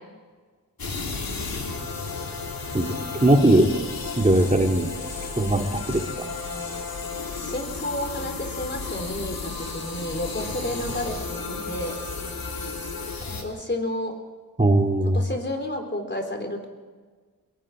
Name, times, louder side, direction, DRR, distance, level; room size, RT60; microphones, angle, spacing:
sound 1, 0.8-13.4, left 4 dB, 85° left, 3.2 m, -33 dB
voice 1, 3.2-3.7 4.2-4.9 5.4-6.0 14.6-15.2, right 1 dB, 20° right, 3 dB, 2.7 m, -19 dB
voice 2, 7.4-11.9 13.2-14.1 15.1-16.7, left 1 dB, 30° left, 4 dB, 4.1 m, -31 dB
24.0 x 22.0 x 5.0 m, 1.5 s
wide cardioid pair, 75°, 35 cm